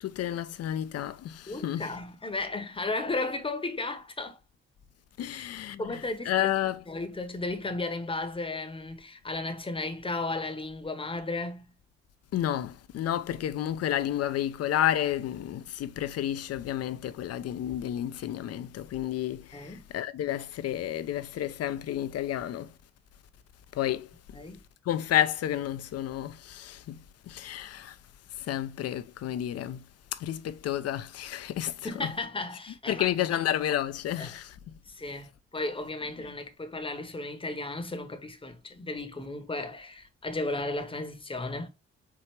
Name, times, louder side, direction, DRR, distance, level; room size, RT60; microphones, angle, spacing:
voice 1, 0.0-1.9 5.2-6.0 6.3-6.8 12.3-22.7 23.7-24.1 24.9-27.0 27.3-28.0 28.5-29.8 30.1-31.9 32.9-34.5, left 11 dB, 50° left, 0.5 m, -31 dB
voice 2, 1.5-4.4 5.3-5.5 5.8-6.5 6.9-11.6 19.5-19.8 24.3-24.6 31.8-33.4 34.2-34.3 34.9-41.7, left 2 dB, 15° left, 1.0 m, -34 dB
4.5 x 2.7 x 3.0 m
hypercardioid pair, 45°, 32 cm